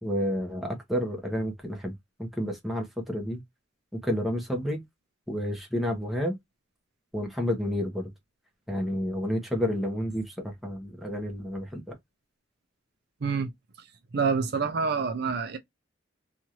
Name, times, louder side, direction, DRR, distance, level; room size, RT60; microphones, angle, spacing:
voice 1, 0.0-1.9 2.2-3.4 4.0-4.8 5.3-6.4 7.1-8.1 8.7-11.8, equal, ahead, 0.9 m, -30 dB
voice 2, 14.1-15.6, right 5 dB, 55° right, 0.5 m, -27 dB
2.8 x 2.5 x 2.9 m
head